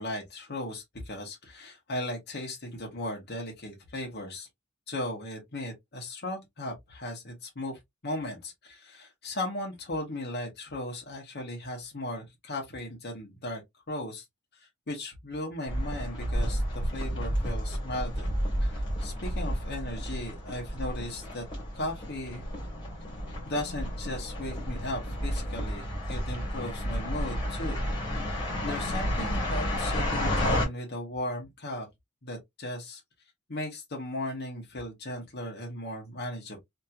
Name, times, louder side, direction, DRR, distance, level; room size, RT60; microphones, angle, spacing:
voice 1, 0.0-4.5 4.9-13.6 13.9-14.2 14.5-18.3 18.6-21.4 21.7-22.5 23.4-27.8 28.2-31.9 32.2-33.0 33.5-36.6, left 1 dB, 55° left, 1.1 m, -37 dB
sound 1, 15.7-30.7, equal, 25° left, 1.6 m, -31 dB
2.9 x 2.8 x 2.4 m
head